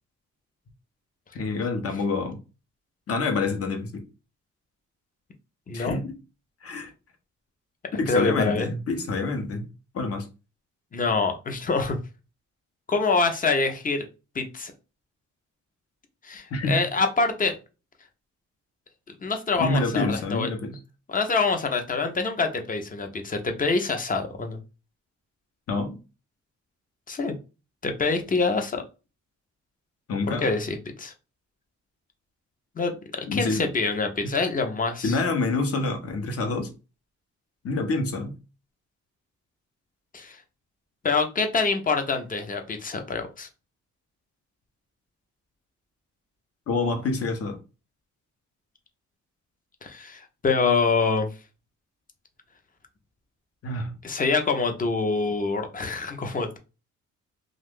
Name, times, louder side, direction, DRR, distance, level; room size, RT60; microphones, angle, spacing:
voice 1, 1.3-2.4 3.1-4.0 5.7-6.2 6.6-6.9 7.9-9.7 9.9-10.3 16.5-16.8 19.6-20.8 25.7-26.0 30.1-30.4 33.3-33.7 34.2-34.3 35.0-36.7 37.6-38.4 46.7-47.6 53.6-54.0, left 3 dB, 50° left, 0.9 m, -27 dB
voice 2, 5.7-6.0 8.1-8.7 10.9-12.0 12.9-14.1 14.3-14.7 16.2-17.6 19.2-20.5 21.1-24.6 27.1-27.3 27.8-28.8 30.3-31.1 32.8-35.2 40.1-40.4 41.0-43.5 49.8-51.3 54.0-56.6, left 4 dB, 25° left, 0.7 m, -25 dB
2.4 x 2.4 x 3.6 m
cardioid pair, 90°, 30 cm